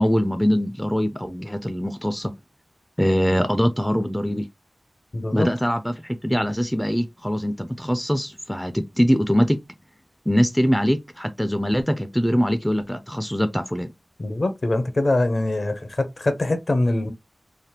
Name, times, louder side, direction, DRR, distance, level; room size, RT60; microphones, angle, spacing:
voice 1, 0.0-2.3 3.0-4.5 5.3-9.6 10.3-13.9, equal, 5° left, 0.3 m, -22 dB
voice 2, 5.1-5.5 14.2-17.1, left 2 dB, 50° left, 0.6 m, -23 dB
3.3 x 2.1 x 2.8 m
wide cardioid pair, 70°, 0 cm